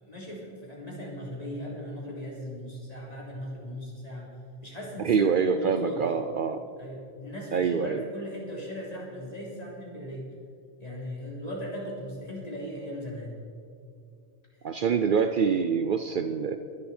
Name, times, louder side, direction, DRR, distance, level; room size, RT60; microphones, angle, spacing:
voice 1, 0.0-4.3 4.6-6.1 6.8-10.3 10.8-13.3, equal, 35° left, -4 dB, 3.7 m, -38 dB
voice 2, 5.0-6.6 7.5-8.0 14.6-16.6, right 6 dB, 55° right, 8 dB, 0.7 m, -25 dB
22.0 x 11.0 x 4.4 m, 2.3 s
omnidirectional pair, 1.1 m